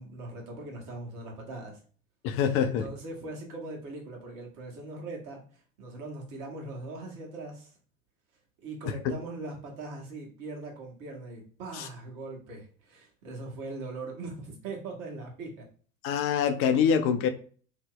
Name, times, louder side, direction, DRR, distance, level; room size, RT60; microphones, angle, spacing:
voice 1, 0.0-1.8 2.6-7.7 8.6-15.7, right 2 dB, 50° right, 0 dB, 1.3 m, -41 dB
voice 2, 2.2-2.9 8.9-9.0 11.7-11.9 16.0-17.3, left 7 dB, 35° left, 8 dB, 0.4 m, -25 dB
2.8 x 2.0 x 3.7 m, 0.43 s
figure-of-eight pair, 75°, 41 cm